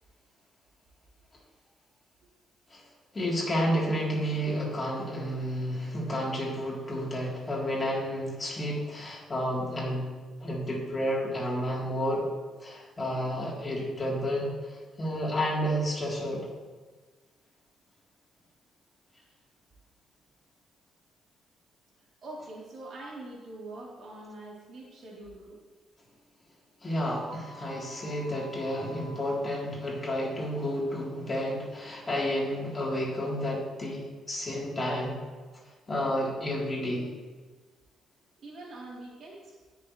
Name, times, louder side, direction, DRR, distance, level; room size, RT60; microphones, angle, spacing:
voice 1, 3.1-10.1 10.4-12.3 12.6-16.5 26.8-35.2 35.9-37.1, equal, 25° left, -4 dB, 3.7 m, -31 dB
voice 2, 22.2-25.6 38.4-39.6, right 2 dB, 60° right, -4 dB, 3.6 m, -44 dB
sound 1, 27.3-29.3, right 1 dB, 85° right, 1.4 m, -48 dB
19.5 x 6.8 x 3.3 m, 1.4 s
cardioid pair, 90°, 0 cm